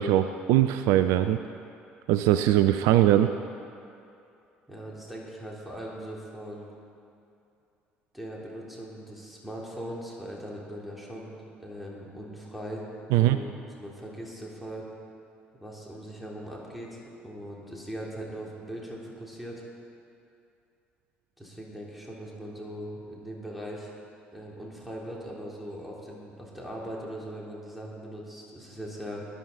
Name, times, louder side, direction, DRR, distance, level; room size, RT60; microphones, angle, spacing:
voice 1, 0.0-1.4 2.1-3.3 13.1-13.4, right 13 dB, 60° right, 10 dB, 0.4 m, -21 dB
voice 2, 4.7-6.7 8.1-12.9 13.1-14.9 15.6-19.6 21.4-23.9 24.3-29.2, equal, ahead, -4 dB, 3.5 m, -40 dB
17.5 x 11.0 x 4.2 m, 2.6 s
figure-of-eight pair, 55°, 6 cm